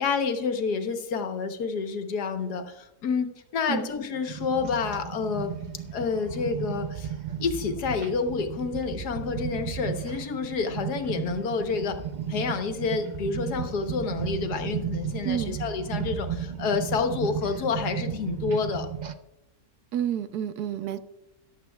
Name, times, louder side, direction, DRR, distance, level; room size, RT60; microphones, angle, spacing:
voice 1, 0.0-5.5 5.9-7.1 7.4-12.0 12.3-18.9, left 5 dB, 90° left, 7 dB, 1.6 m, -29 dB
sound 1, 4.3-19.1, right 8 dB, 60° right, 0.4 m, -34 dB
voice 2, 15.2-15.6 19.9-21.0, right 9 dB, 85° right, 11 dB, 1.3 m, -29 dB
14.0 x 11.0 x 2.3 m, 0.88 s
omnidirectional pair, 1.7 m